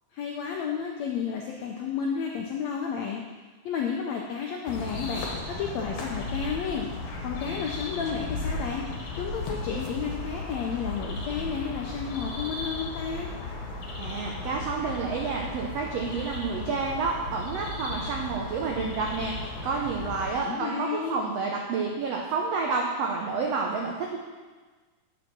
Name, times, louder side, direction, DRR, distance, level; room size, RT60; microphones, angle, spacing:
voice 1, 0.1-3.2 3.6-5.2 5.6-6.9 7.2-13.3 20.4-21.2, left 6 dB, 80° left, 0 dB, 1.5 m, -32 dB
sound 1, 4.7-20.3, left 2 dB, 60° left, 2.2 m, -35 dB
voice 2, 14.0-19.3 19.6-24.2, right 4 dB, 85° right, 0 dB, 1.4 m, -29 dB
7.2 x 6.2 x 6.0 m, 1.3 s
omnidirectional pair, 3.9 m